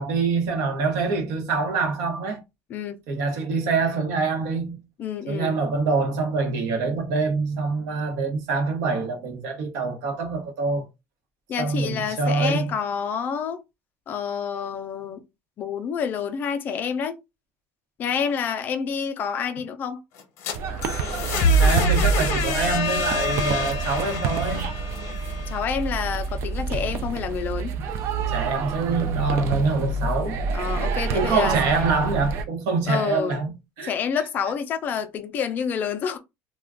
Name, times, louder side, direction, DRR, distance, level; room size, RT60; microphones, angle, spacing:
voice 1, 0.0-2.4 3.1-4.7 5.3-10.9 11.6-12.7 21.6-24.7 28.3-30.4 31.1-33.9, right 4 dB, 65° right, 0.9 m, -25 dB
voice 2, 2.7-3.0 5.0-5.6 11.5-13.6 14.1-15.2 15.6-17.2 18.0-20.0 25.5-27.7 30.5-31.6 32.9-33.4 33.8-36.2, left 7 dB, 30° left, 0.4 m, -28 dB
sound 1, 20.2-26.1, equal, 50° left, 0.8 m, -25 dB
sound 2, 20.5-32.4, right 5 dB, 45° right, 0.4 m, -29 dB
2.4 x 2.2 x 3.5 m
cardioid pair, 170°, 6 cm